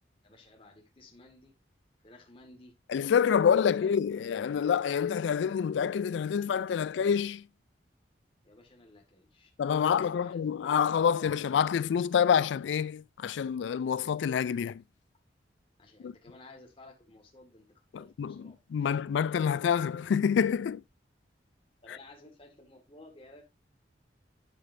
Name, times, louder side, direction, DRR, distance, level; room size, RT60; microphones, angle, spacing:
voice 1, 0.2-1.5 2.0-2.7 3.5-4.1 8.4-10.6 15.8-19.0 21.8-23.4, left 2 dB, 30° left, 1.8 m, -55 dB
voice 2, 2.9-7.4 9.6-14.8 16.0-16.1 17.9-20.8, left 7 dB, 75° left, 0.3 m, -27 dB
11.5 x 5.1 x 2.6 m
head